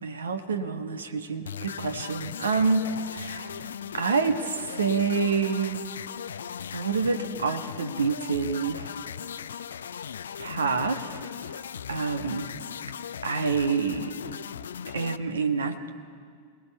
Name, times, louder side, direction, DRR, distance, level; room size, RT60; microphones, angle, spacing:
voice 1, 0.0-3.5 3.9-5.8 6.7-8.9 10.4-11.2 11.9-12.5 13.2-14.2 14.9-15.9, right 5 dB, 70° right, 7 dB, 1.4 m, -27 dB
sound 1, 1.5-15.2, left 8 dB, 65° left, 0.5 m, -38 dB
28.0 x 20.0 x 5.6 m, 2.1 s
figure-of-eight pair, 90°, 0 cm